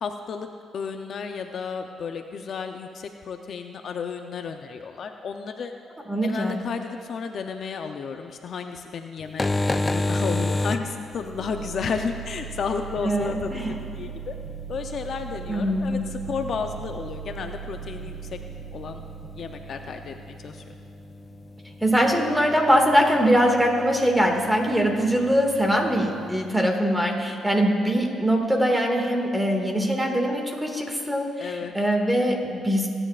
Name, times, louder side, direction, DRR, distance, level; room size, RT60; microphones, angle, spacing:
voice 1, 0.0-5.7 6.2-14.3 14.7-18.4 18.7-19.0 19.4-20.6 31.4-31.7, left 5 dB, 60° left, 5 dB, 0.6 m, -33 dB
voice 2, 6.1-6.6 13.0-13.7 15.5-16.0 21.8-32.9, equal, 10° right, 1 dB, 2.1 m, -22 dB
sound 1, 9.2-26.5, left 2 dB, 20° left, 0.4 m, -34 dB
sound 2, 11.1-23.0, right 8 dB, 90° right, 3.8 m, -40 dB
27.5 x 9.9 x 2.5 m, 2.3 s
cardioid pair, 90°, 0 cm